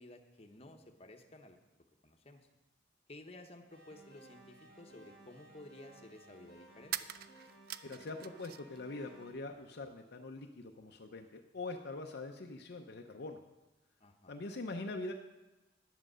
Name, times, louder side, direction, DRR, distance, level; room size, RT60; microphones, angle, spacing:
voice 1, 0.0-1.6 2.0-2.5 3.1-7.1 14.0-14.3, left 2 dB, 30° left, 4 dB, 1.0 m, -54 dB
sound 1, 3.7-9.3, right 2 dB, 75° right, 3.8 m, -59 dB
sound 2, 6.8-8.8 9.1-10.0, right 12 dB, 50° right, 0.3 m, -44 dB
voice 2, 7.8-13.4 14.3-15.1, left 2 dB, 60° left, 4 dB, 0.6 m, -43 dB
10.0 x 7.6 x 6.2 m, 1.0 s
head